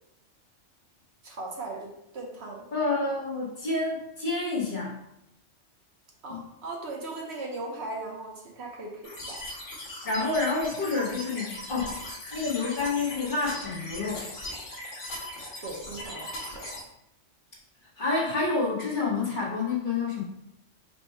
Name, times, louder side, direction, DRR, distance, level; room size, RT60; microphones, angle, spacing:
voice 1, 1.2-2.7 6.2-9.4 15.6-16.7, right 2 dB, 65° right, -1 dB, 1.0 m, -38 dB
voice 2, 2.7-5.0 6.3-6.4 10.0-12.0 12.3-14.3 18.0-20.2, left 3 dB, 45° left, -4 dB, 1.1 m, -28 dB
sound 1, 9.0-16.8, left 1 dB, 85° left, 1.4 m, -39 dB
4.3 x 2.2 x 4.3 m, 0.82 s
omnidirectional pair, 1.2 m